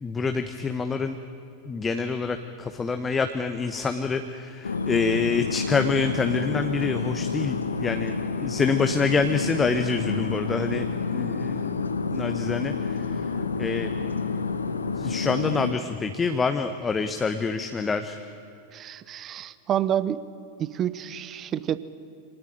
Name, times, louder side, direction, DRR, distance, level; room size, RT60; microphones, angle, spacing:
voice 1, 0.0-1.2 1.7-13.2 13.6-13.9 15.0-18.2, left 4 dB, 15° left, 7 dB, 1.1 m, -27 dB
sound 1, 4.6-15.7, left 4 dB, 75° left, 1.2 m, -29 dB
voice 2, 18.7-20.2 20.6-21.8, right 10 dB, 30° right, 17 dB, 0.9 m, -28 dB
25.5 x 18.5 x 9.2 m, 2.8 s
figure-of-eight pair, 90°, 0 cm